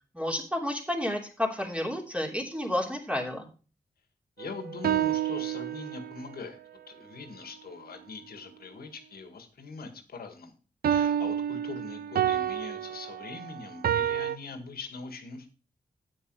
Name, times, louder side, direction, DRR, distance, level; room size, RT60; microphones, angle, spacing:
voice 1, 0.1-3.5, left 1 dB, 10° right, 1 dB, 3.1 m, -31 dB
voice 2, 4.4-6.6 6.9-10.5 10.9-15.5, left 4 dB, 85° left, 7 dB, 1.8 m, -42 dB
sound 1, 4.4-6.3 10.8-14.4, right 10 dB, 80° right, 0.5 m, -29 dB
9.1 x 8.8 x 4.7 m, 0.36 s
cardioid pair, 65°, 15 cm